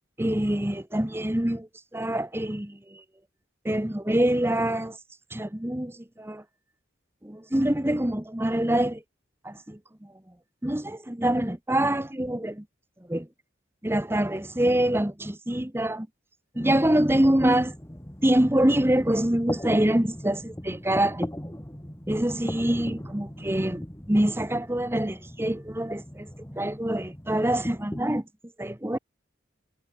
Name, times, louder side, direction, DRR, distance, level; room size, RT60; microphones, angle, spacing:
voice 1, 0.2-3.0 3.6-5.0 5.3-6.4 7.2-9.0 9.4-9.8 10.6-12.6 13.1-13.3 13.8-16.1 16.5-17.7 18.2-21.3 22.1-26.3 26.6-28.2 28.6-29.0, right 1 dB, 10° right, 1.1 m, -25 dB
sound 1, 16.5-28.0, equal, 15° left, 2.0 m, -39 dB
head